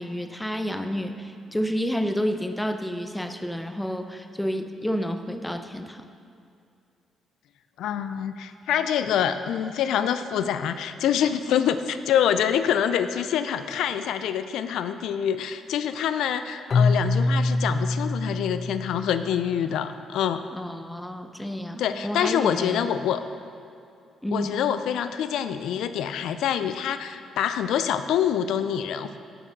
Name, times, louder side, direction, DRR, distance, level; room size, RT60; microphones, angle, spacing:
voice 1, 0.0-6.1 20.5-22.9 24.2-24.6, equal, 5° left, 7 dB, 0.5 m, -30 dB
voice 2, 7.8-20.4 21.8-23.2 24.3-29.2, left 9 dB, 80° left, 11 dB, 0.3 m, -26 dB
Keyboard (musical), 16.7-19.7, left 3 dB, 45° left, 0.7 m, -25 dB
6.7 x 5.8 x 6.2 m, 2.5 s
cardioid pair, 90°, 0 cm